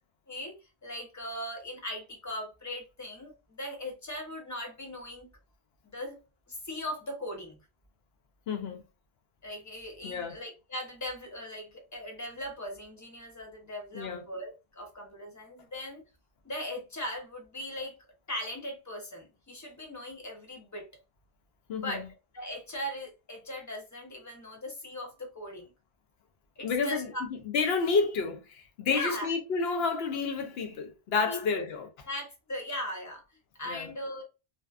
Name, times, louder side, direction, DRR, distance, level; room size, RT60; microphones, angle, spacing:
voice 1, 0.8-5.3 5.8-6.2 6.5-7.6 9.4-16.0 16.4-18.0 18.3-20.9 21.7-25.7 26.6-27.3 28.9-29.3 31.3-31.7 32.1-34.2, left 1 dB, 20° left, 0.5 m, -39 dB
voice 2, 8.5-8.8 10.0-10.3 13.9-14.2 21.7-22.0 26.6-31.9 33.7-33.9, left 4 dB, 75° left, 0.8 m, -30 dB
2.6 x 2.1 x 2.3 m
omnidirectional pair, 1.1 m